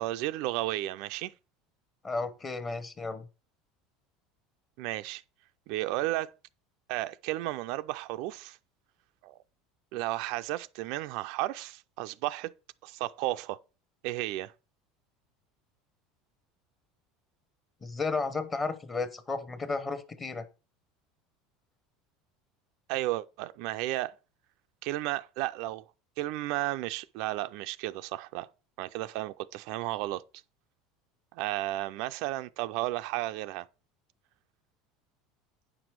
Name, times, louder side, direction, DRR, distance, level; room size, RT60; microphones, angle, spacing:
voice 1, 0.0-1.3 4.8-5.2 5.7-6.3 6.9-8.6 9.2-9.4 9.9-12.5 12.8-13.6 14.0-14.5 22.9-24.1 24.8-25.8 26.2-28.5 28.8-30.2 31.3-33.7, right 16 dB, 55° right, 0.4 m, -33 dB
voice 2, 2.0-3.3 17.8-20.5, left 3 dB, 15° left, 0.9 m, -33 dB
9.4 x 6.0 x 4.6 m
cardioid pair, 170°, 0 cm